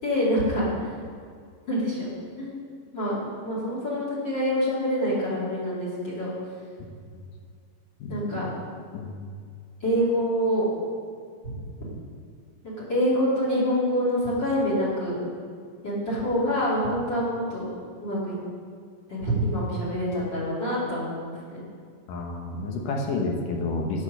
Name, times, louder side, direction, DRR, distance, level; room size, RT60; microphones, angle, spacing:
voice 1, 0.0-0.9 1.7-2.1 2.4-2.6 2.9-6.3 8.1-8.5 9.8-10.7 11.4-11.5 12.6-15.2 15.8-17.8 18.0-18.3 19.1-21.6, equal, 30° left, -6 dB, 3.5 m, -26 dB
voice 2, 8.0-8.4 8.9-9.2 22.1-24.0, left 2 dB, 65° left, 1 dB, 2.6 m, -30 dB
8.8 x 8.2 x 6.6 m, 2.1 s
omnidirectional pair, 4.3 m